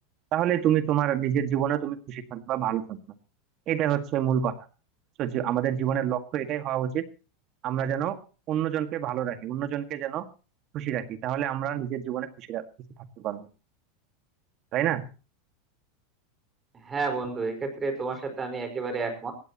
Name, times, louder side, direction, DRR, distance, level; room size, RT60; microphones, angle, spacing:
voice 1, 0.3-3.0 3.7-4.5 5.2-7.0 7.6-8.2 8.5-10.3 10.7-12.6 13.2-13.5 14.7-15.1, right 10 dB, 40° right, 9 dB, 1.8 m, -27 dB
voice 2, 16.8-19.3, right 4 dB, 20° right, 8 dB, 4.9 m, -30 dB
19.0 x 16.5 x 3.0 m, 0.34 s
supercardioid pair, 130°, 0 cm